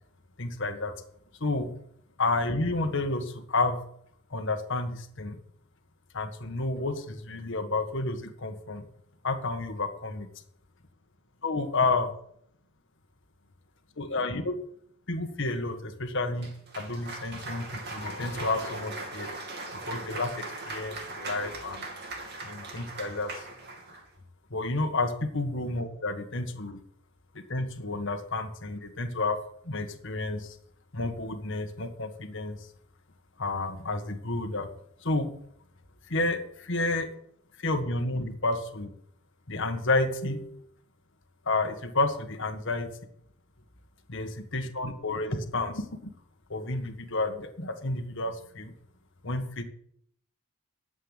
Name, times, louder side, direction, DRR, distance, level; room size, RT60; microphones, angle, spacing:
voice 1, 0.4-0.9 1.4-1.7 2.2-3.8 4.3-5.4 6.1-8.9 9.2-10.3 11.4-12.1 14.0-14.5 15.1-16.5 16.7-19.3 19.7-21.8 22.4-23.5 24.5-26.8 27.3-29.4 29.6-30.6 30.9-32.7 33.4-34.7 35.0-35.3 36.1-37.1 37.6-38.9 39.5-40.7 41.4-42.9 44.1-45.9 46.5-48.7 49.2-49.6, left 2 dB, 55° left, 7 dB, 1.7 m, -30 dB
Cheering / Applause, 16.4-24.1, right 3 dB, 50° right, 2.8 m, -40 dB
12.0 x 8.2 x 8.9 m, 0.69 s
head